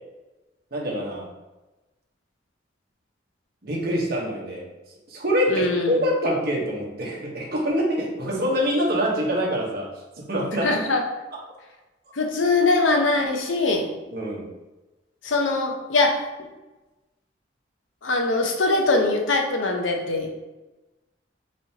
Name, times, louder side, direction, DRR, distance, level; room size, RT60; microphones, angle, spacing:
voice 1, 0.7-1.3 3.6-4.6 5.1-9.9 10.3-10.8 14.1-14.5, equal, 55° right, -3 dB, 1.2 m, -25 dB
voice 2, 5.5-6.0 10.6-11.0 12.1-13.9 15.2-16.3 18.0-20.4, left 3 dB, 90° left, 3 dB, 0.7 m, -22 dB
5.1 x 3.4 x 2.8 m, 1.1 s
head